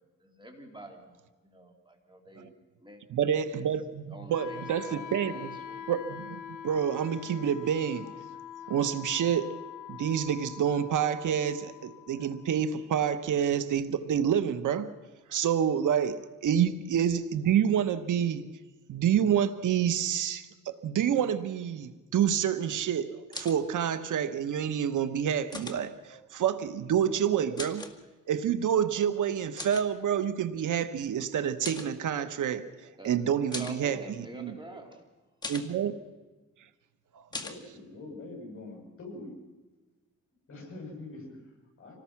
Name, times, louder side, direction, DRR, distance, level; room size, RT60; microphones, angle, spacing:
voice 1, 0.2-2.5 2.8-3.0 3.3-3.7 4.1-5.9 33.0-33.2 33.6-35.0, right 1 dB, 15° right, 2.8 m, -47 dB
voice 2, 3.1-5.6 5.9-8.2 8.7-9.6 9.9-15.0 15.3-18.5 18.9-27.9 28.3-34.6 35.5-35.9, right 9 dB, 75° right, 1.2 m, -28 dB
Wind instrument woodwind instrument, 4.3-14.3, left 9 dB, 90° left, 1.2 m, -45 dB
sound 1, 23.3-23.6 25.5-25.8 27.6-27.9 29.6-29.9 31.6-31.9 33.5-33.8 35.4-35.7 37.3-37.6, left 3 dB, 15° left, 1.9 m, -39 dB
voice 3, 37.3-39.3 40.5-42.0, left 2 dB, 45° left, 7.5 m, -44 dB
26.0 x 19.0 x 5.9 m
cardioid pair, 115°, 31 cm